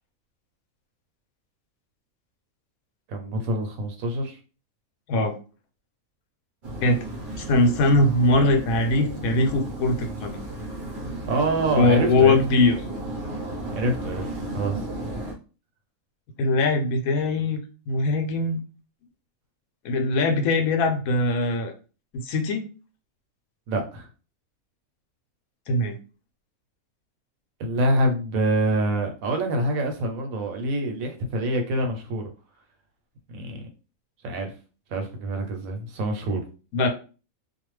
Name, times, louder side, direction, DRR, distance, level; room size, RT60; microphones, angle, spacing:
voice 1, 3.1-4.4 11.3-12.4 13.7-14.2 14.5-14.8 23.7-24.1 27.6-32.3 33.3-33.6 34.2-34.5 34.9-36.4, right 1 dB, 75° right, 4 dB, 1.1 m, -26 dB
sound 1, 6.6-15.3, right 1 dB, 45° right, 0.7 m, -34 dB
voice 2, 7.4-10.4 11.8-12.8 16.4-17.6 17.9-18.6 19.8-21.7 22.1-22.6 25.7-26.0 36.7-36.9, left 2 dB, 80° left, 5 dB, 1.1 m, -21 dB
2.6 x 2.2 x 3.1 m, 0.35 s
omnidirectional pair, 1.5 m